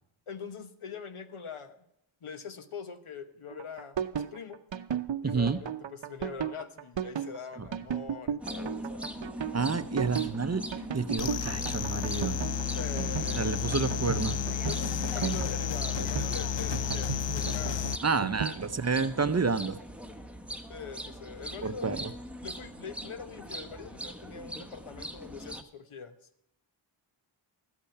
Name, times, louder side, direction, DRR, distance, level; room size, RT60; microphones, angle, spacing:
voice 1, 0.3-1.9 2.2-4.6 5.2-9.1 12.7-13.9 14.7-17.8 18.3-18.6 20.7-22.0 22.4-26.2, left 5 dB, 80° left, 9 dB, 1.2 m, -43 dB
sound 1, 3.5-18.6, right 8 dB, 65° right, 0.8 m, -34 dB
voice 2, 5.2-5.6 9.5-10.7 10.9-12.4 13.4-14.4 18.0-19.8 21.6-22.1, right 4 dB, 35° right, 12 dB, 0.6 m, -29 dB
sound 2, 8.4-25.6, equal, 5° right, 0.9 m, -41 dB
sound 3, 11.2-18.0, left 8 dB, 60° left, 0.5 m, -32 dB
13.0 x 8.5 x 5.7 m, 0.75 s
wide cardioid pair, 85°, 49 cm